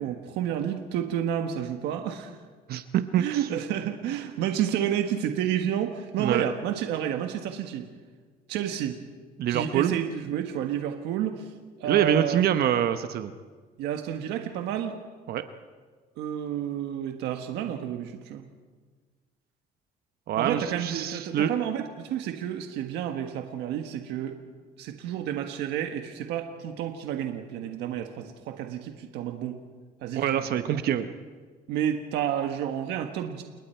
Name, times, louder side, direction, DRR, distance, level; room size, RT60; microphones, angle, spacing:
voice 1, 0.0-2.4 3.2-7.9 8.5-9.0 9.5-11.5 11.8-12.4 13.8-14.9 16.2-18.4 20.3-24.4 24.8-29.6 30.0-30.4 30.7-30.8 31.7-33.4, right 10 dB, 85° right, 5 dB, 1.5 m, -30 dB
voice 2, 2.7-3.2 6.2-6.5 9.4-9.9 11.8-13.3 15.3-15.4 20.3-21.5 30.1-31.1, right 10 dB, 65° right, 9 dB, 1.0 m, -25 dB
29.5 x 19.5 x 4.5 m, 1.5 s
cardioid pair, 110°, 17 cm